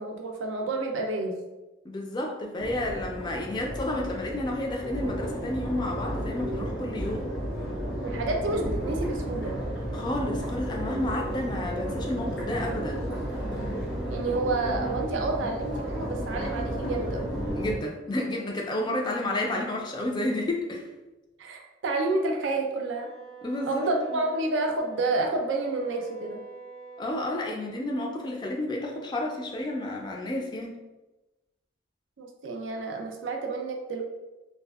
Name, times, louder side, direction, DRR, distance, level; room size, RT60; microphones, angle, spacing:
voice 1, 0.0-1.4 8.0-9.6 14.1-17.3 21.4-23.1 23.7-26.4 32.2-34.0, right 2 dB, 85° right, 2 dB, 0.4 m, -29 dB
voice 2, 1.8-7.3 9.9-13.1 17.6-20.9 23.4-23.9 27.0-30.8, left 1 dB, 25° left, 0 dB, 0.3 m, -31 dB
Crowd, 2.6-17.7, equal, 85° left, 1.1 m, -33 dB
Wind instrument woodwind instrument, 22.8-27.4, right 5 dB, 35° right, 0.5 m, -46 dB
2.6 x 2.3 x 2.3 m, 1.1 s
head